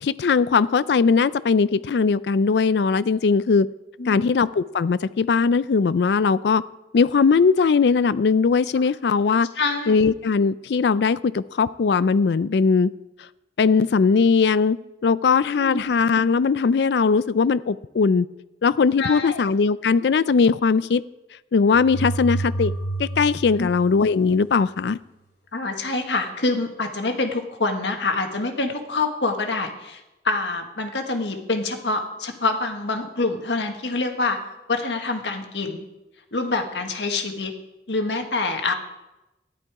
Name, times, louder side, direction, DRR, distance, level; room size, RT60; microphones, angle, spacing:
voice 1, 0.0-3.7 4.1-6.6 6.9-9.5 9.9-12.9 13.6-14.8 15.0-18.3 18.6-21.0 21.5-22.7 23.0-25.0 38.7-38.8, left 5 dB, 70° left, 17 dB, 0.4 m, -19 dB
voice 2, 4.0-4.4 9.5-10.0 15.5-15.8 19.0-19.4 23.6-23.7 25.5-30.0 30.2-34.4 34.7-35.9 36.3-37.5 37.9-38.7, left 3 dB, 85° left, 5 dB, 1.5 m, -26 dB
sound 1, 21.7-24.6, right 2 dB, 50° left, 5.0 m, -29 dB
13.5 x 11.0 x 4.8 m, 1.0 s
head